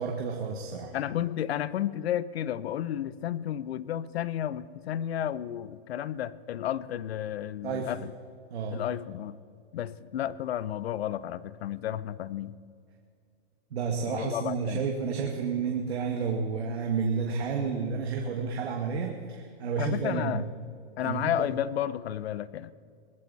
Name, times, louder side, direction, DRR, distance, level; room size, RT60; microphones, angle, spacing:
voice 1, 0.0-1.0 7.6-7.9 8.5-8.8 13.7-20.4 21.0-21.5, right 5 dB, 85° right, 2 dB, 1.9 m, -31 dB
voice 2, 0.9-8.1 8.7-9.4 9.7-12.6 14.1-14.8 19.8-20.4 21.0-22.7, left 11 dB, 80° left, 18 dB, 0.8 m, -32 dB
20.5 x 15.0 x 4.1 m, 2.3 s
hypercardioid pair, 140°, 31 cm